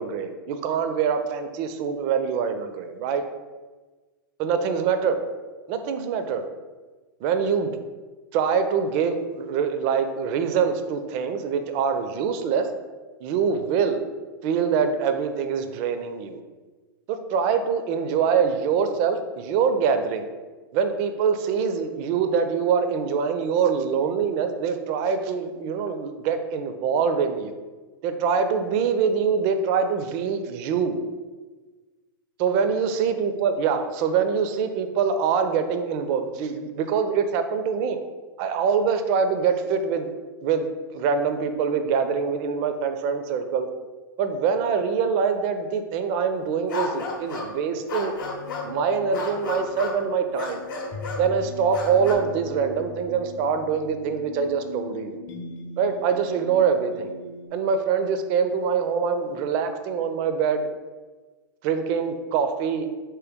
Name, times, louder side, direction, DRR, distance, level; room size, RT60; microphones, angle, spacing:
voice 1, 0.0-3.2 4.4-5.2 5.7-6.4 7.2-7.8 8.3-12.7 13.2-14.0 14.4-16.4 17.1-20.2 20.7-27.5 28.0-31.0 32.4-38.0 38.4-40.1 40.4-43.7 44.2-48.1 48.6-50.6 51.2-55.2 55.8-57.1 57.5-60.7 61.6-62.9, right 6 dB, 45° right, 8 dB, 0.4 m, -24 dB
sound 1, 46.7-47.6 47.9-48.7 49.1-50.0 50.4-51.3 51.7-52.1, left 3 dB, 70° left, 0.8 m, -32 dB
sound 2, 48.2-57.5, left 2 dB, 35° left, 0.6 m, -40 dB
3.2 x 3.0 x 3.4 m, 1.3 s
hypercardioid pair, 120°, 12 cm